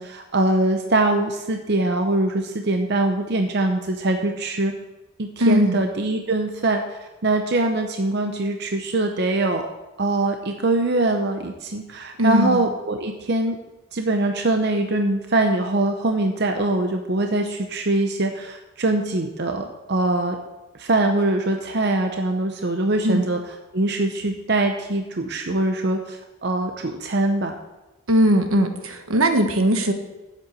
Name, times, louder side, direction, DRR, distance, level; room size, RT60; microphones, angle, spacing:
voice 1, 0.0-4.7 5.2-9.7 10.0-13.6 13.9-20.4 20.8-23.4 23.7-27.5, right 2 dB, 50° right, 4 dB, 0.7 m, -23 dB
voice 2, 5.4-5.8 12.2-12.6 23.0-23.3 28.1-29.9, right 1 dB, 80° right, 6 dB, 1.3 m, -19 dB
7.9 x 7.6 x 8.3 m, 1.1 s
head